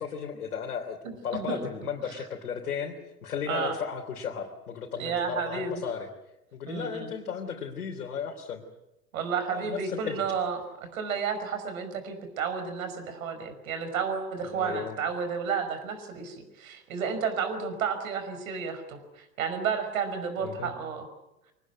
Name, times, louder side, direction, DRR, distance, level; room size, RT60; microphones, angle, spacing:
voice 1, 0.0-2.9 3.2-6.1 6.5-8.6 9.5-10.2 14.5-14.9 20.4-20.7, left 7 dB, 65° left, 0 dB, 3.4 m, -35 dB
voice 2, 1.0-1.6 2.0-2.1 3.5-3.8 5.0-5.8 6.7-7.1 9.1-21.1, right 6 dB, 60° right, 9 dB, 5.5 m, -32 dB
24.5 x 19.5 x 9.4 m, 0.91 s
figure-of-eight pair, 100°, 47 cm